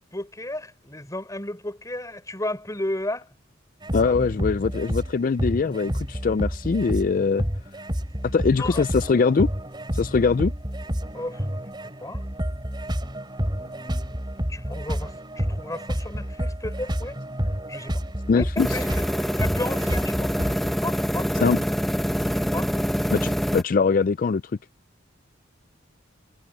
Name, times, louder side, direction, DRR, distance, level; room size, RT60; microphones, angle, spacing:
voice 1, 0.1-3.3 4.0-4.2 8.0-8.2 8.5-9.0 11.1-11.5 11.8-12.3 13.5-17.2 17.7-18.0 18.3-19.1 19.3-20.3 20.8-21.8 22.5-23.1, left 1 dB, 15° left, 5.1 m, -34 dB
sound 1, 3.8-20.7, equal, 25° right, 3.6 m, -30 dB
voice 2, 3.9-7.4 8.3-9.5 9.9-10.5 18.3-18.7 21.4-21.6 23.1-24.4, left 4 dB, 45° left, 0.4 m, -22 dB
sound 2, 18.6-23.6, equal, ahead, 1.0 m, -25 dB
head